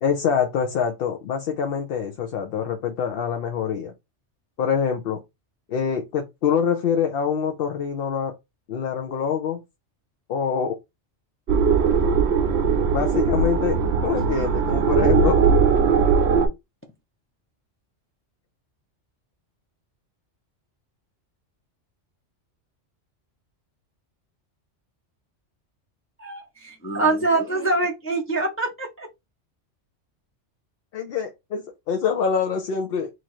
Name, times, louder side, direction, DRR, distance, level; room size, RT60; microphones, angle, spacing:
voice 1, 0.0-3.9 4.6-5.2 5.7-8.3 8.7-9.6 10.3-10.8 12.9-15.4 30.9-33.1, left 7 dB, 60° left, 0.7 m, -25 dB
sound 1, 11.5-16.5, right 5 dB, 65° right, 0.9 m, -19 dB
voice 2, 26.2-29.1, right 2 dB, 20° left, 0.4 m, -24 dB
3.0 x 2.5 x 4.3 m
omnidirectional pair, 1.2 m